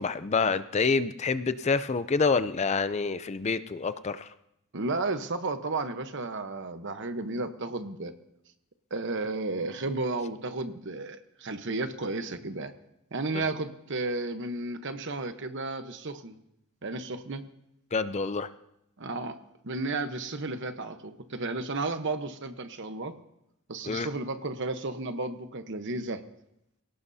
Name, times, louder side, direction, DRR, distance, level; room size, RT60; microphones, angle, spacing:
voice 1, 0.0-4.3 13.3-13.5 17.9-18.5 23.8-24.1, left 4 dB, 30° left, 13 dB, 0.4 m, -27 dB
voice 2, 4.7-8.1 8.9-12.7 13.1-16.4 16.8-17.4 19.0-19.4 19.6-23.2 23.7-26.2, right 3 dB, 55° right, 9 dB, 1.0 m, -33 dB
24.5 x 17.5 x 2.7 m, 0.82 s
head